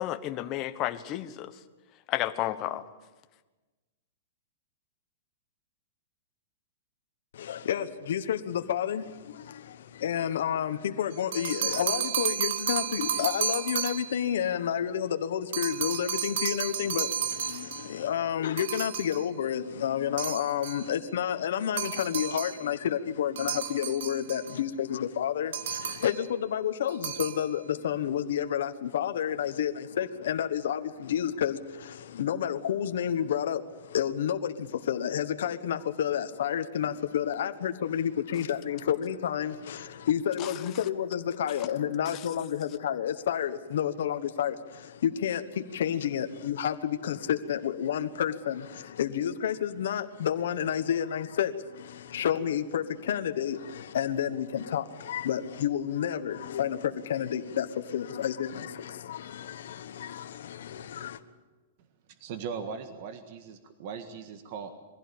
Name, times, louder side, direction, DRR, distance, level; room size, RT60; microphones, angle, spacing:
voice 1, 0.0-1.5 2.1-2.8 40.4-40.5, left 13 dB, 25° left, 10 dB, 1.0 m, -31 dB
voice 2, 7.3-61.2, left 9 dB, 70° left, 7 dB, 1.2 m, -30 dB
sound 1, 11.1-14.2 15.5-18.0 18.6-19.3 20.2-20.9 21.8-22.6 23.4-24.6 25.5-26.2 26.9-27.5, right 8 dB, 70° right, 1.4 m, -32 dB
voice 3, 62.2-64.7, right 6 dB, 45° right, 7 dB, 1.7 m, -39 dB
22.5 x 16.0 x 8.6 m, 1.2 s
hypercardioid pair, 165°, 0 cm